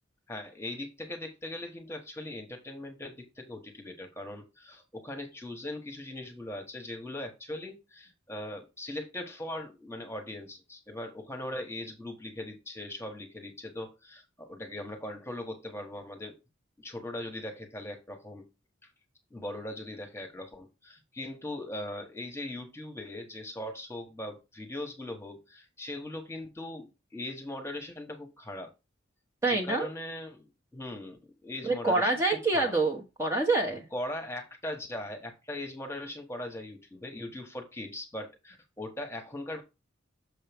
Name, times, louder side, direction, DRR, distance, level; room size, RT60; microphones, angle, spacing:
voice 1, 0.3-16.4 16.8-18.4 19.3-28.7 29.5-32.1 32.5-32.7 33.9-39.6, left 1 dB, 15° left, 1.2 m, -40 dB
voice 2, 29.4-29.9 31.6-33.9, right 2 dB, 15° right, 0.9 m, -26 dB
6.7 x 5.4 x 3.5 m
head